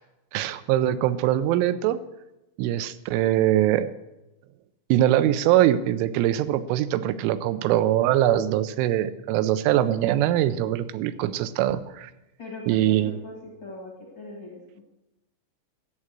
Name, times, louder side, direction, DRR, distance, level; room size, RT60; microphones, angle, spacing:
voice 1, 0.3-2.0 2.6-3.9 4.9-12.1 12.7-13.1, right 12 dB, 90° right, 13 dB, 3.2 m, -22 dB
voice 2, 12.4-13.3 13.6-14.8, left 2 dB, 55° left, -2 dB, 1.2 m, -40 dB
11.5 x 8.4 x 7.4 m, 0.95 s
omnidirectional pair, 5.5 m